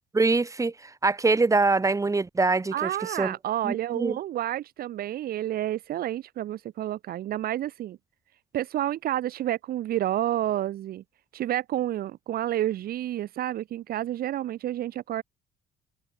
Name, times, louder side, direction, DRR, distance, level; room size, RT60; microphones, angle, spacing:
voice 1, 0.1-2.9 3.2-3.3 3.6-4.2, right 3 dB, 20° right, 4.9 m, -24 dB
voice 2, 2.7-8.0 8.5-11.0 11.3-15.2, right 12 dB, 65° right, 1.6 m, -29 dB
cardioid pair, 110°, 17 cm